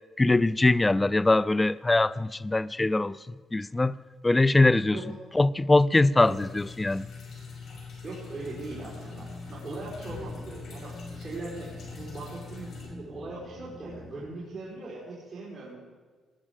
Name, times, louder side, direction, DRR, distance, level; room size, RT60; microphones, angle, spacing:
voice 1, 0.2-3.2 3.5-4.0 4.2-5.0 5.3-7.1, left 2 dB, 15° left, 0.4 m, -22 dB
sound 1, 6.1-12.9, left 5 dB, 60° left, 5.8 m, -43 dB
voice 2, 8.0-11.7 12.0-15.8, right 3 dB, 35° right, 4.1 m, -40 dB
sound 2, 8.3-14.3, left 1 dB, 40° left, 2.7 m, -47 dB
19.5 x 10.0 x 5.0 m
cardioid pair, 90°, 0 cm